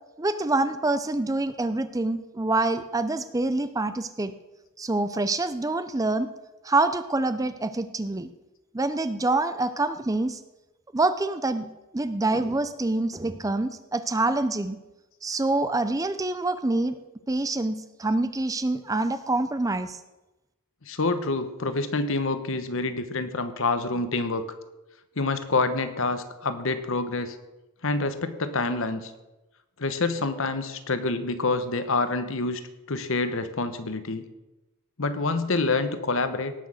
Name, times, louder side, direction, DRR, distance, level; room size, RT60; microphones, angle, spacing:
voice 1, 0.2-4.3 4.8-6.3 6.6-8.3 8.7-10.4 10.9-11.7 11.9-14.8 15.2-17.0 17.3-20.0, right 2 dB, 15° right, 11 dB, 0.5 m, -26 dB
voice 2, 20.8-24.5 25.2-27.4 27.8-29.1 29.8-34.2 35.0-36.5, left 3 dB, 60° left, 10 dB, 1.1 m, -27 dB
18.0 x 6.4 x 6.4 m, 1.0 s
head